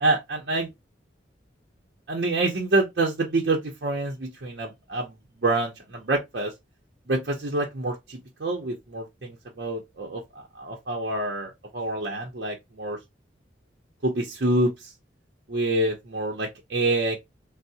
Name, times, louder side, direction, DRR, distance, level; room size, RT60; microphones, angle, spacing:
voice 1, 0.0-0.7 2.1-6.5 7.1-13.0 14.0-14.9 15.5-17.2, right 2 dB, 60° right, 0.6 m, -27 dB
4.5 x 2.0 x 2.7 m
head